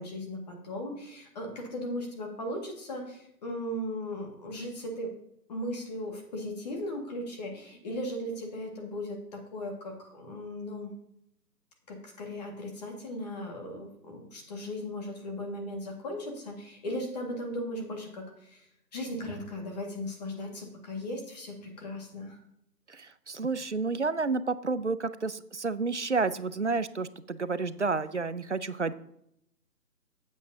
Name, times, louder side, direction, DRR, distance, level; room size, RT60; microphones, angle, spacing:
voice 1, 0.0-5.1 5.5-10.9 11.9-22.4, left 1 dB, 25° left, 2 dB, 1.8 m, -37 dB
voice 2, 22.9-28.9, right 4 dB, 50° right, 15 dB, 0.5 m, -30 dB
15.0 x 8.3 x 2.7 m, 0.74 s
figure-of-eight pair, 150°, 50 cm